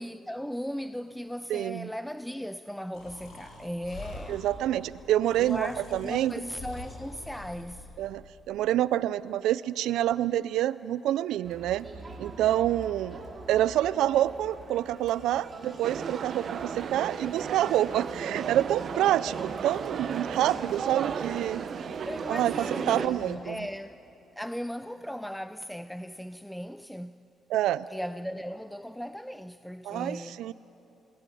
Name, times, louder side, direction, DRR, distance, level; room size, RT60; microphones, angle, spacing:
voice 1, 0.0-4.4 5.4-7.9 22.0-24.0 24.4-27.2 27.9-30.4, equal, 5° left, 0.5 m, -37 dB
voice 2, 1.5-1.9 4.3-6.3 8.0-11.9 12.2-13.2 13.5-21.6 22.3-23.6 27.5-27.9 29.8-30.5, right 12 dB, 85° right, 0.4 m, -27 dB
Breathing, 2.9-8.0, left 2 dB, 85° left, 5.3 m, -45 dB
Crowd, 11.4-23.4, right 3 dB, 35° right, 3.6 m, -46 dB
sound 1, 15.8-23.1, right 7 dB, 55° right, 0.9 m, -35 dB
21.5 x 17.0 x 10.0 m
cardioid pair, 90°, 0 cm